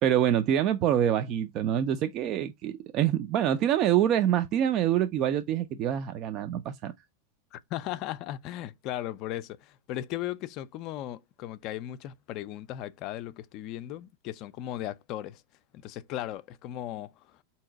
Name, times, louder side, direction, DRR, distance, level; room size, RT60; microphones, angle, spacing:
voice 1, 0.0-6.9, right 10 dB, 45° right, 0.4 m, -26 dB
voice 2, 7.5-15.4 15.7-17.4, left 13 dB, 50° left, 0.4 m, -37 dB
3.8 x 2.9 x 4.5 m
hypercardioid pair, 110°, 0 cm